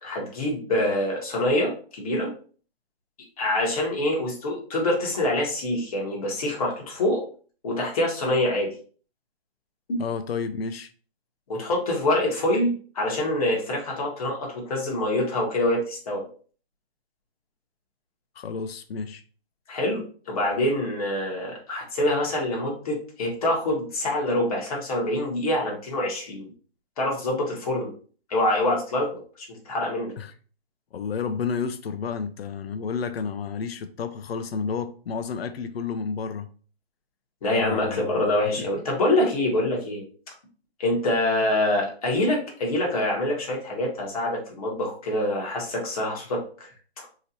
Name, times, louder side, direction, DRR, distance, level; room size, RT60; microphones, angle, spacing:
voice 1, 0.0-2.3 3.4-7.2 7.6-8.7 9.9-10.0 11.5-16.3 19.7-26.5 27.0-27.9 28.3-30.1 37.4-40.0 40.8-46.7, left 1 dB, 35° left, 1.0 m, -25 dB
voice 2, 10.0-10.9 18.4-19.2 30.2-30.3 30.9-36.5 37.6-38.2, left 5 dB, 75° left, 0.5 m, -31 dB
3.0 x 2.8 x 2.6 m
hypercardioid pair, 160°, 31 cm